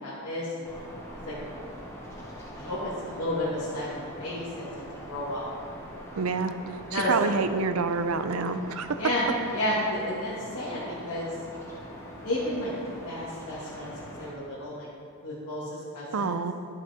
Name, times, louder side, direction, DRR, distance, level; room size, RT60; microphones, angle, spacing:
voice 1, 0.0-0.7 1.2-1.4 2.4-5.4 6.9-7.3 9.0-9.3 9.5-11.3 12.2-12.7 13.0-14.9 15.2-16.4, left 1 dB, 80° left, -9 dB, 2.0 m, -32 dB
sound 1, 0.6-14.3, equal, 10° left, 1.3 m, -43 dB
voice 2, 6.2-6.5 6.9-9.0 16.1-16.5, right 4 dB, 75° right, 10 dB, 0.5 m, -27 dB
11.0 x 5.8 x 5.0 m, 2.4 s
head